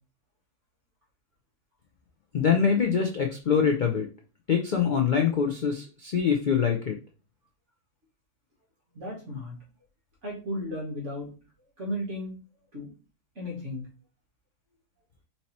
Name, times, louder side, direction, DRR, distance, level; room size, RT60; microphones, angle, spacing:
voice 1, 2.3-4.1 4.5-7.0, left 7 dB, 70° left, 3 dB, 0.4 m, -24 dB
voice 2, 8.9-9.6 10.2-11.3 11.8-12.4 12.7-12.9 13.4-13.9, left 1 dB, 50° right, -3 dB, 2.0 m, -34 dB
4.5 x 2.8 x 4.2 m, 0.35 s
omnidirectional pair, 1.7 m